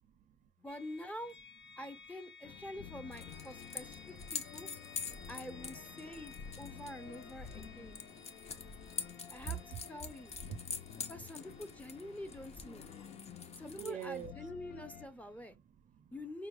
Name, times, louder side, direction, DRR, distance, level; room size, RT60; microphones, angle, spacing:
voice 1, 0.0-0.5 4.5-4.6 5.0-5.3 6.0-6.1 6.7-6.8 7.6-8.8 9.5-9.6 10.3-11.1 12.8-16.2, right 9 dB, 50° right, 0.5 m, -49 dB
voice 2, 0.6-1.4 1.8-4.7 5.3-8.0 9.3-10.3 11.1-12.9 13.6-15.6 16.1-16.5, left 1 dB, 10° left, 0.6 m, -47 dB
sound 1, 0.7-14.5, left 5 dB, 80° left, 1.7 m, -58 dB
sound 2, 2.4-15.1, left 9 dB, 55° left, 0.4 m, -53 dB
sound 3, 3.1-14.3, left 5 dB, 40° left, 0.9 m, -46 dB
5.5 x 2.3 x 3.0 m
cardioid pair, 110°, 17 cm